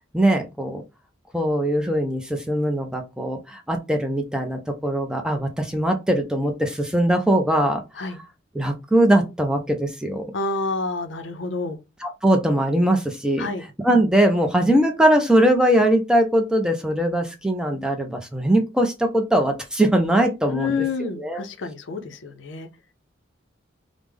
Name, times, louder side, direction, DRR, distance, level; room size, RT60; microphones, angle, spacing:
voice 1, 0.1-0.8 1.3-7.8 8.5-10.3 12.0-13.5 13.8-20.8 21.2-21.4, right 1 dB, 5° right, 0.4 m, -21 dB
voice 2, 10.3-11.8 13.4-13.6 20.5-22.7, left 4 dB, 65° left, 0.5 m, -28 dB
3.3 x 2.0 x 3.3 m
head